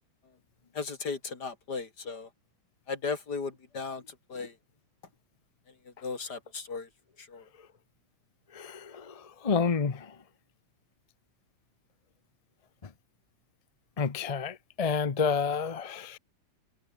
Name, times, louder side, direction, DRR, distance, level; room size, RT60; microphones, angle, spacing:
voice 1, 0.7-2.3 2.9-4.0 4.3-4.5 6.0-6.9 7.3-7.4, left 4 dB, 55° left, 3.4 m, -36 dB
voice 2, 8.5-10.1 14.0-16.2, left 5 dB, 40° left, 0.5 m, -30 dB
omnidirectional pair, 2.1 m